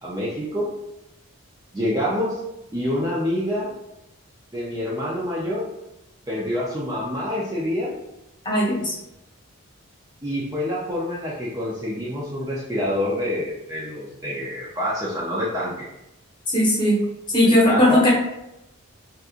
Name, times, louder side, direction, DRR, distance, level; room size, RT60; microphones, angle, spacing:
voice 1, 0.0-0.7 1.7-2.4 2.7-3.7 4.5-5.7 6.3-8.0 10.2-15.9 17.4-18.0, left 1 dB, 15° right, -6 dB, 0.5 m, -27 dB
voice 2, 8.4-8.9 16.5-17.0 17.3-18.1, left 1 dB, 20° left, -5 dB, 0.9 m, -18 dB
4.1 x 2.4 x 2.4 m, 0.89 s
head